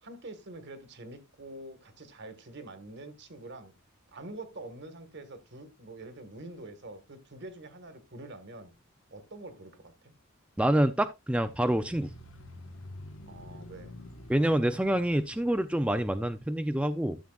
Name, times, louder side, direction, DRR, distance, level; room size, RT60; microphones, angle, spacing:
voice 1, 0.0-3.7 4.1-8.7 9.1-10.1 13.2-13.9, right 2 dB, 60° right, 1.6 m, -46 dB
voice 2, 10.6-12.1 14.3-17.2, right 1 dB, 5° right, 0.5 m, -27 dB
sound 1, 11.4-16.3, left 1 dB, 80° left, 1.3 m, -48 dB
13.0 x 7.5 x 2.4 m
head